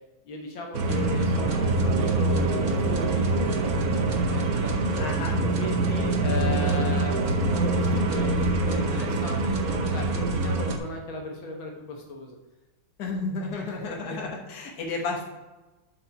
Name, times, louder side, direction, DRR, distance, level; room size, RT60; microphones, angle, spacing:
voice 1, 0.3-4.7 5.6-12.4 13.5-14.2, left 2 dB, 70° left, 1 dB, 2.0 m, -36 dB
sound 1, 0.7-10.8, right 2 dB, 55° right, 1.2 m, -24 dB
voice 2, 5.0-5.4 13.0-15.2, left 3 dB, 50° left, 0 dB, 1.8 m, -32 dB
7.8 x 5.8 x 4.5 m, 1.2 s
omnidirectional pair, 2.3 m